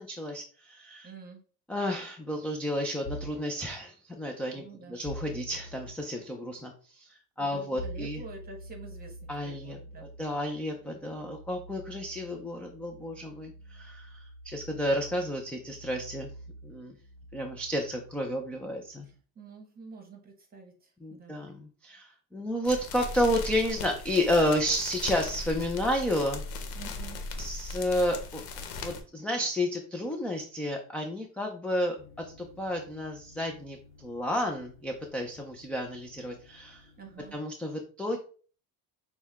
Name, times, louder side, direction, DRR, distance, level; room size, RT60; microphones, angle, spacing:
voice 1, 0.0-1.1 1.7-8.2 9.3-9.8 10.2-16.3 16.6-17.0 17.3-19.1 21.0-26.4 27.4-36.9 37.3-38.2, left 1 dB, 5° left, 2 dB, 0.3 m, -31 dB
voice 2, 1.0-1.4 4.5-5.0 7.4-10.1 19.0-21.4 26.7-27.2 37.0-37.4, right 4 dB, 25° right, 3 dB, 1.1 m, -48 dB
sound 1, 3.1-3.5 5.0-6.0 7.8-19.1, right 1 dB, 50° left, 1.2 m, -45 dB
sound 2, 22.6-29.0, left 3 dB, 75° left, 1.0 m, -38 dB
sound 3, 32.0-37.4, left 4 dB, 35° left, 1.3 m, -56 dB
6.2 x 2.2 x 3.5 m, 0.40 s
cardioid pair, 140°, 38 cm